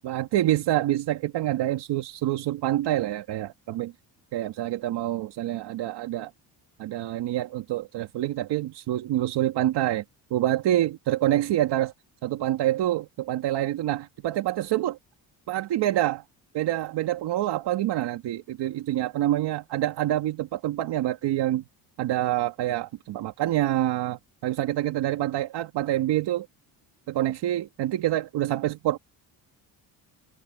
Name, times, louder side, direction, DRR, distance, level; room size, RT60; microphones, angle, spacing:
voice 1, 0.0-3.9 4.3-6.3 6.8-10.0 10.3-11.9 12.2-15.0 15.5-16.2 16.5-21.6 22.0-26.5 27.1-29.0, right 13 dB, 75° right, 2.4 m, -26 dB
open air
cardioid pair, 120°, 41 cm